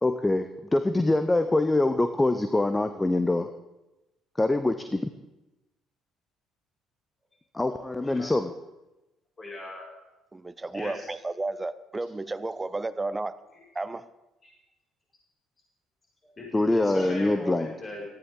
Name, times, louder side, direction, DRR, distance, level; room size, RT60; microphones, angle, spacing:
voice 1, 0.0-3.5 4.4-5.1 7.5-8.5 16.5-17.7, left 2 dB, 15° left, 9 dB, 0.8 m, -24 dB
voice 2, 7.7-8.3 9.4-9.9 10.7-11.1 14.4-14.5 16.2-18.1, left 1 dB, 30° left, -4 dB, 5.6 m, -39 dB
voice 3, 10.3-13.4 13.7-14.1, right 2 dB, 20° right, 15 dB, 0.7 m, -32 dB
18.0 x 13.5 x 3.8 m, 1.0 s
figure-of-eight pair, 50°, 0 cm